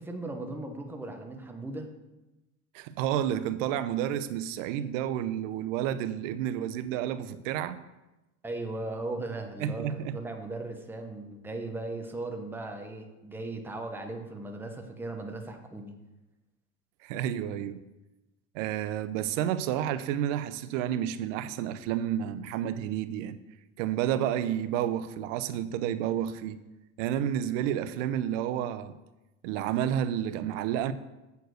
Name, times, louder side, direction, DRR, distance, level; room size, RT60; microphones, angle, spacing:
voice 1, 0.0-1.9 8.4-15.9, right 2 dB, 5° right, 0.9 m, -37 dB
voice 2, 2.7-7.8 9.6-10.2 17.0-17.8 18.5-23.4 23.8-26.6 27.0-28.9 29.4-30.9, right 10 dB, 85° right, 0.7 m, -30 dB
8.0 x 4.6 x 6.4 m
supercardioid pair, 125°, 37 cm